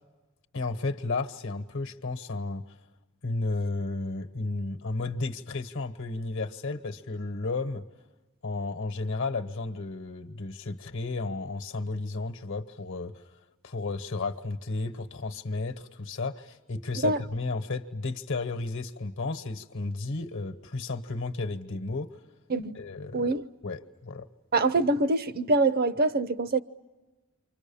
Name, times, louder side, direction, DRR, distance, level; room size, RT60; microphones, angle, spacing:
voice 1, 0.5-2.6 3.2-7.8 8.4-13.2 13.6-22.2 22.7-23.3 23.6-24.3, left 3 dB, 60° left, 1.1 m, -33 dB
voice 2, 24.5-26.6, right 2 dB, 45° right, 0.8 m, -24 dB
29.5 x 25.0 x 7.1 m
head